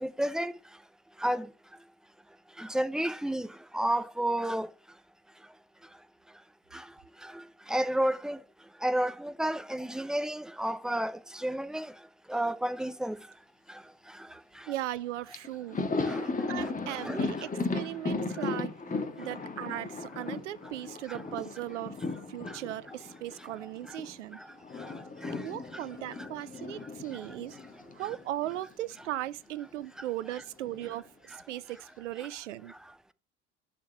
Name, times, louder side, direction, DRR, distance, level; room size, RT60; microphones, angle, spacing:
voice 1, 0.0-0.5 1.2-1.5 2.6-3.5 3.7-4.7 7.7-8.4 8.8-11.1 11.4-11.9 12.3-13.2 16.1-16.2 16.6-17.2 25.2-25.3, right 1 dB, ahead, 0.6 m, -30 dB
voice 2, 14.7-18.7 19.2-22.0 22.3-24.4 25.4-27.6 27.9-32.7, right 14 dB, 80° right, 0.5 m, -38 dB
Thunder, 15.0-15.1 15.3-24.1 24.4-28.7 29.0-29.1 30.3-31.0, left 3 dB, 20° left, 1.6 m, -36 dB
10.5 x 6.4 x 3.3 m
figure-of-eight pair, 60°, 36 cm